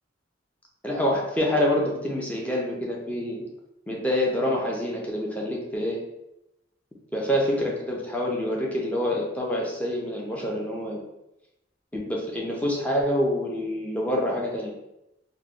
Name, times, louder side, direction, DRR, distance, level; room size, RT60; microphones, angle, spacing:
voice 1, 0.8-3.4 3.9-6.0 7.1-11.0 11.9-14.7, left 1 dB, 10° left, -2 dB, 0.5 m, -26 dB
3.0 x 2.1 x 3.7 m, 0.89 s
head